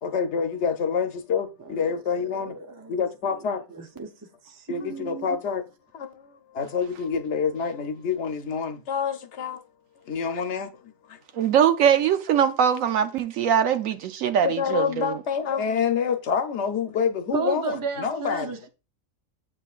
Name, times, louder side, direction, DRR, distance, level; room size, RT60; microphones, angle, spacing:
voice 1, 0.0-2.6 2.9-3.6 4.7-5.7 5.9-9.6 10.1-11.2 14.4-18.5, left 6 dB, 60° left, 1.1 m, -27 dB
voice 2, 2.3-3.0 3.3-3.4 3.7-4.1 4.5-5.4 17.3-18.7, right 5 dB, 30° right, 0.4 m, -33 dB
voice 3, 11.3-15.1, right 8 dB, 75° right, 1.0 m, -22 dB
8.0 x 5.5 x 2.4 m
omnidirectional pair, 1.4 m